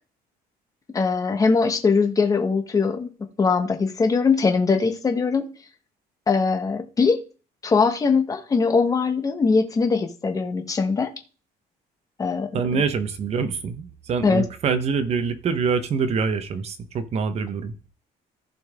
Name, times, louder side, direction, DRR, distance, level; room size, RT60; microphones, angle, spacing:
voice 1, 0.9-3.1 3.4-5.5 6.3-7.2 7.6-11.1 12.2-12.8 14.2-14.4, left 4 dB, 20° left, 1.3 m, -21 dB
voice 2, 12.5-17.7, right 5 dB, 40° right, 1.1 m, -25 dB
15.0 x 5.4 x 3.7 m
cardioid pair, 155°, 17 cm